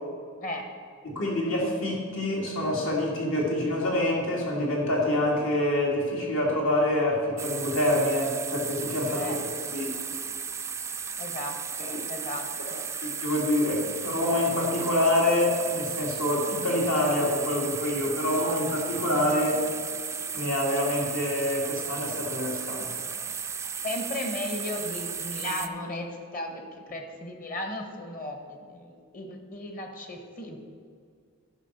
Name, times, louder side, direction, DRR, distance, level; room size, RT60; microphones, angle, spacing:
voice 1, 1.0-9.3 9.7-9.9 11.9-12.0 13.0-19.7 20.3-23.0, left 1 dB, 75° left, -2 dB, 2.4 m, -26 dB
sound 1, 7.4-25.7, right 6 dB, 15° right, 0.3 m, -35 dB
voice 2, 11.2-12.8 23.8-30.6, left 1 dB, 40° left, 4 dB, 1.3 m, -36 dB
11.0 x 5.6 x 6.7 m, 2.1 s
head